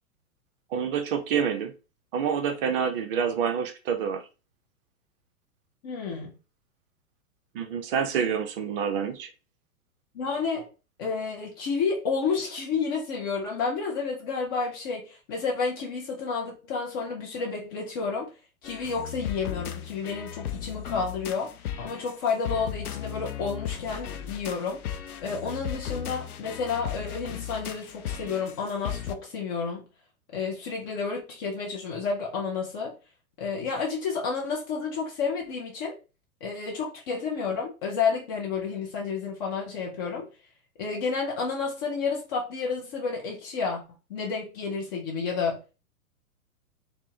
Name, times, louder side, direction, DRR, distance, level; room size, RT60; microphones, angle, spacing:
voice 1, 0.7-1.7 2.1-4.2 7.5-9.3, right 7 dB, 40° right, 0.6 m, -27 dB
voice 2, 5.8-6.4 10.1-10.7 11.0-18.3 18.6-24.8 25.2-29.9 30.3-32.9 33.4-36.0 36.4-40.3 40.8-43.8 44.1-45.7, left 5 dB, 20° left, 0.3 m, -30 dB
sound 1, 18.6-29.2, left 10 dB, 80° left, 0.5 m, -36 dB
4.3 x 2.1 x 2.8 m
figure-of-eight pair, 110°, 44 cm